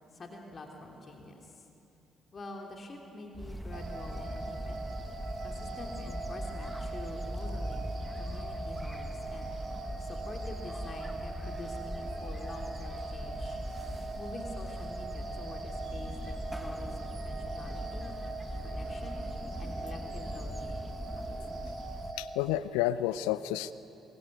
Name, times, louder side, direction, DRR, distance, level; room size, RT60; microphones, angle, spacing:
voice 1, 0.1-1.7 2.3-4.9 5.4-9.5 10.0-13.6 14.2-18.1 18.6-19.3 19.6-20.9, left 2 dB, 40° left, 1 dB, 3.3 m, -46 dB
sound 1, 3.3-22.1, equal, ahead, 1.6 m, -40 dB
sound 2, 3.7-22.3, right 3 dB, 55° right, 6.1 m, -42 dB
voice 2, 22.2-23.7, left 13 dB, 75° left, 16 dB, 0.6 m, -30 dB
26.0 x 22.5 x 9.5 m, 2.8 s
hypercardioid pair, 45°, 0 cm